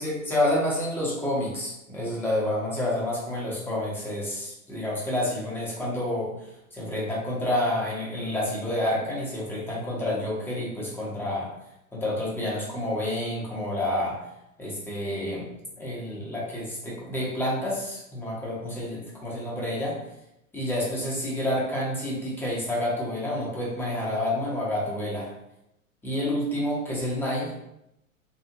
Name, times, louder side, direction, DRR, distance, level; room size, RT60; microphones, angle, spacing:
voice 1, 0.0-6.3 6.7-11.5 11.9-14.2 14.6-15.5 15.8-20.0 20.5-25.3 26.0-27.5, left 1 dB, 5° left, -5 dB, 0.8 m, -29 dB
3.4 x 2.4 x 2.9 m, 0.85 s
figure-of-eight pair, 105°, 42 cm